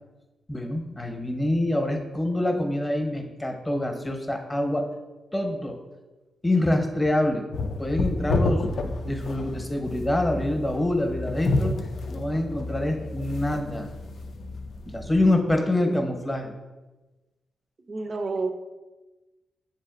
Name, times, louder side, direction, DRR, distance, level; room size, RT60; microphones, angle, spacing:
voice 1, 0.5-4.9 5.3-5.8 6.4-7.4 7.8-8.6 9.0-11.8 12.1-13.9 14.9-16.5, left 1 dB, 15° left, 3 dB, 0.8 m, -25 dB
sound 1, 7.5-15.3, left 2 dB, 70° left, 0.3 m, -30 dB
voice 2, 17.9-18.5, right 3 dB, 50° right, 6 dB, 0.5 m, -30 dB
7.2 x 2.5 x 2.4 m, 1.1 s
cardioid pair, 60°, 0 cm